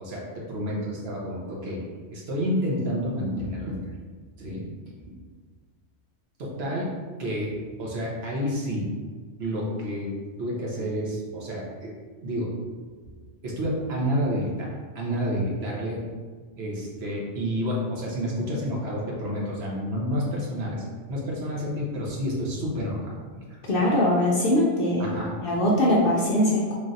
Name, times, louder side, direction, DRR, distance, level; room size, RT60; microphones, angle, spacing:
voice 1, 0.0-3.8 4.4-4.7 5.1-5.2 6.4-6.9 7.2-8.9 9.4-10.1 10.4-11.9 12.2-12.6 13.4-14.7 14.9-16.0 16.6-20.8 21.1-23.8 25.0-25.3, equal, 60° right, -4 dB, 1.0 m, -29 dB
voice 2, 23.7-25.1 25.4-26.7, left 1 dB, 60° left, -3 dB, 0.6 m, -21 dB
3.2 x 2.5 x 3.9 m, 1.5 s
omnidirectional pair, 1.3 m